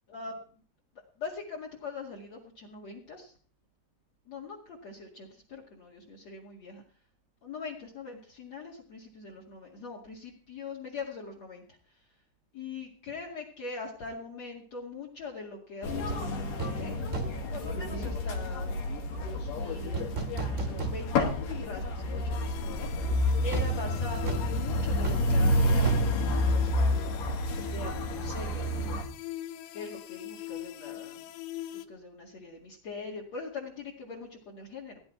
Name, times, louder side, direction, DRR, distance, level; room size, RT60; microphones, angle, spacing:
voice 1, 1.2-3.3 4.3-6.8 7.4-11.8 12.5-17.0 17.5-22.9 23.4-29.0 29.7-31.2 31.7-35.0, left 4 dB, 45° left, 4 dB, 2.8 m, -42 dB
sound 1, 15.8-29.0, left 1 dB, 65° left, 4.4 m, -29 dB
sound 2, 16.1-16.3 16.6-16.9 17.1-17.5 19.9-21.4 21.7-21.8 23.5-27.2 27.4-27.6, right 5 dB, 60° right, 0.7 m, -36 dB
sound 3, 22.3-31.8, left 14 dB, 80° left, 3.0 m, -42 dB
18.0 x 11.0 x 4.6 m, 0.43 s
omnidirectional pair, 5.0 m